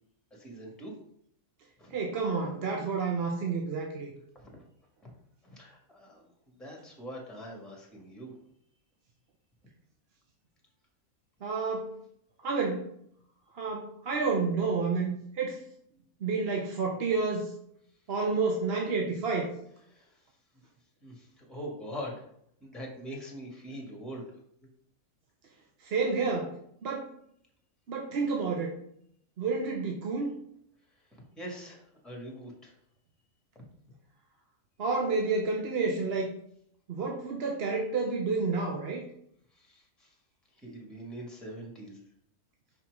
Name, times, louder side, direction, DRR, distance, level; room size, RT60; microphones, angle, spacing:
voice 1, 0.3-0.9 1.8-2.0 4.3-4.6 5.0-5.1 5.4-8.4 19.9-20.2 21.0-22.2 22.6-24.2 31.1-32.7 39.5-40.1 40.5-42.0, equal, ahead, -1 dB, 1.7 m, -43 dB
voice 2, 1.9-4.1 11.4-12.0 12.4-12.9 13.5-15.6 16.2-17.5 18.1-19.5 25.8-27.1 27.9-28.8 29.4-30.3 34.8-36.3 36.9-39.0, right 4 dB, 50° right, 1 dB, 0.9 m, -30 dB
5.7 x 4.4 x 4.7 m, 0.70 s
omnidirectional pair, 1.5 m